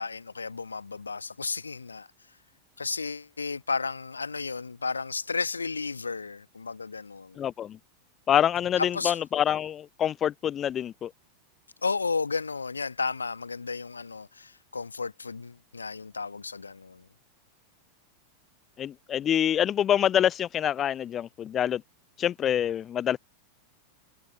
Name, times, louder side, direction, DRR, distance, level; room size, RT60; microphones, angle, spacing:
voice 1, 0.0-2.1 2.8-7.4 8.8-9.2 11.8-17.1, left 4 dB, 75° left, 1.1 m, -33 dB
voice 2, 7.4-7.8 8.3-11.1 18.8-21.8 22.2-23.2, left 10 dB, 25° left, 0.4 m, -26 dB
figure-of-eight pair, 90°, 0 cm